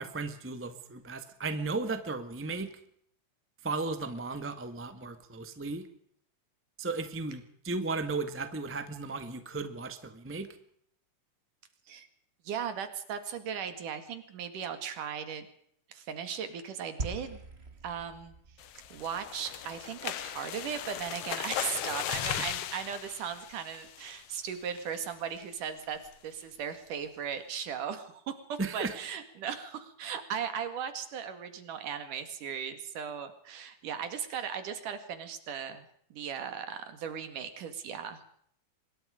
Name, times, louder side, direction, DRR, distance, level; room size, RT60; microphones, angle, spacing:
voice 1, 0.0-2.7 3.6-5.9 6.8-10.5 28.6-28.9, right 3 dB, 10° right, 9 dB, 0.7 m, -35 dB
voice 2, 12.5-15.5 15.9-17.4 17.8-18.3 18.9-38.3, right 7 dB, 75° right, 9 dB, 3.6 m, -37 dB
sound 1, 17.0-21.4, right 2 dB, 25° right, 1.6 m, -44 dB
sound 2, 18.6-24.4 24.8-25.0 25.4-25.5 25.8-26.1, left 11 dB, 65° left, 1.6 m, -37 dB
24.5 x 21.5 x 5.1 m, 0.67 s
omnidirectional pair, 3.7 m